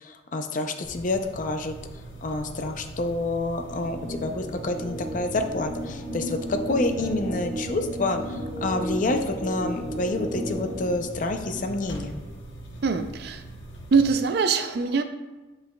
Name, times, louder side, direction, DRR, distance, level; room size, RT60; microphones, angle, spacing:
voice 1, 0.0-1.7 2.2-12.1, left 2 dB, 45° left, 6 dB, 0.5 m, -28 dB
sound 1, 0.8-14.1, right 1 dB, 85° left, 1.0 m, -40 dB
sound 2, 3.6-10.9, equal, 10° right, 1.3 m, -34 dB
voice 2, 12.8-13.4 13.9-15.0, right 5 dB, 60° right, 8 dB, 0.4 m, -23 dB
7.7 x 5.7 x 2.2 m, 1.2 s
head